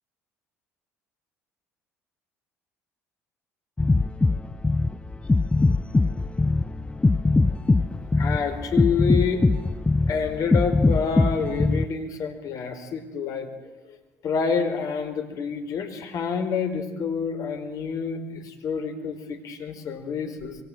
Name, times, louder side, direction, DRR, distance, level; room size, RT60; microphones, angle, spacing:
sound 1, 3.8-11.8, left 3 dB, 15° left, 0.8 m, -21 dB
voice 1, 8.2-9.4 10.1-13.5 13.9-14.0 14.2-20.6, left 6 dB, 55° left, 7 dB, 4.6 m, -28 dB
27.0 x 23.5 x 7.8 m, 1.2 s
hypercardioid pair, 60°, 7 cm